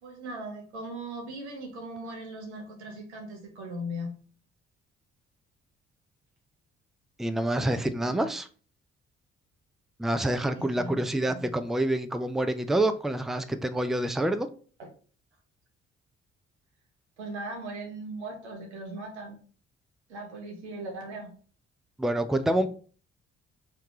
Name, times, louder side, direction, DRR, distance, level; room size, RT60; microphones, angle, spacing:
voice 1, 0.0-4.2 7.6-8.3 10.6-11.6 14.8-14.9 17.2-19.4 20.1-21.3, right 1 dB, 90° right, 2 dB, 1.0 m, -39 dB
voice 2, 7.2-8.5 10.0-14.5 22.0-22.7, right 1 dB, ahead, 10 dB, 0.5 m, -27 dB
4.5 x 3.2 x 3.7 m, 0.41 s
hypercardioid pair, 45°, 33 cm